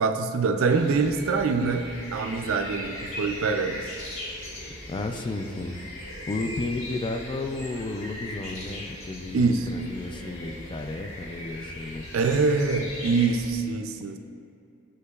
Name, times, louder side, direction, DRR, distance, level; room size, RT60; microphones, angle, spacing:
voice 1, 0.0-3.9 9.3-9.7 12.1-14.2, right 4 dB, 75° right, 7 dB, 0.4 m, -24 dB
sound 1, 0.7-13.5, left 1 dB, 80° left, 1.4 m, -39 dB
voice 2, 4.9-5.8 6.3-12.1, left 2 dB, 25° left, 6 dB, 0.3 m, -33 dB
8.1 x 5.7 x 2.3 m, 2.5 s
head